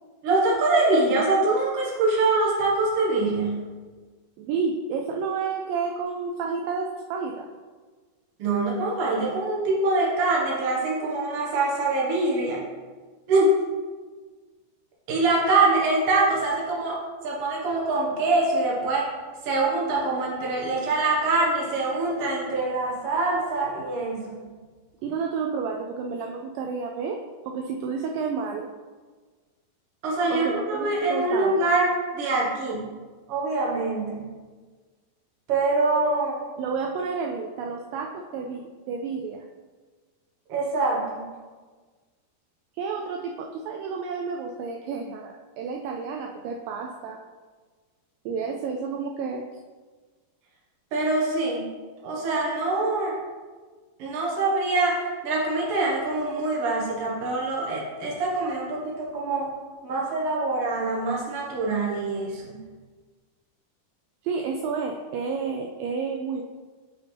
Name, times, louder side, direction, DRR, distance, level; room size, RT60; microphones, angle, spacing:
voice 1, 0.2-3.6 8.4-12.6 13.3-13.5 15.1-17.0 17.2-19.1 19.4-24.4 30.0-31.9 32.1-32.8 33.3-34.2 35.5-36.4 40.5-41.3 50.9-51.6 52.0-53.2 54.0-59.5 59.8-62.5, right 2 dB, 55° right, -4 dB, 1.7 m, -24 dB
voice 2, 4.4-7.5 25.0-27.2 27.5-28.7 30.3-31.7 36.6-39.5 42.8-47.2 48.3-49.4 64.2-66.4, right 5 dB, 85° right, 2 dB, 2.0 m, -30 dB
6.5 x 6.0 x 3.3 m, 1.4 s
omnidirectional pair, 4.5 m